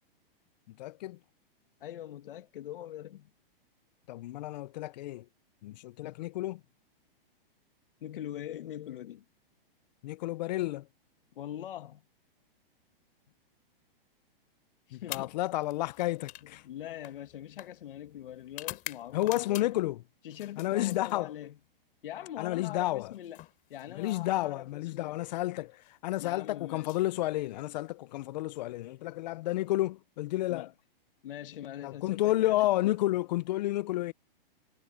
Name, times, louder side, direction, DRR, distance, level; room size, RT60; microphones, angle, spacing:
voice 1, 0.7-1.2 4.1-5.3 5.6-6.6 10.0-10.9 14.9-16.7 19.1-20.0 20.6-21.3 22.4-23.2 23.9-30.7 31.8-34.1, left 16 dB, 45° left, 0.6 m, -31 dB
voice 2, 1.8-3.3 6.0-6.2 8.0-9.2 11.4-12.0 14.9-15.3 16.6-19.7 20.3-21.5 22.0-23.4 23.7-24.7 24.9-25.1 26.2-26.9 30.5-30.7 31.2-32.7, left 12 dB, 65° left, 2.2 m, -42 dB
sound 1, 15.0-19.9 20.3-21.6 22.8-24.6 25.7-25.9 26.7-27.9, left 17 dB, 30° left, 3.7 m, -47 dB
hypercardioid pair, 150°, 29 cm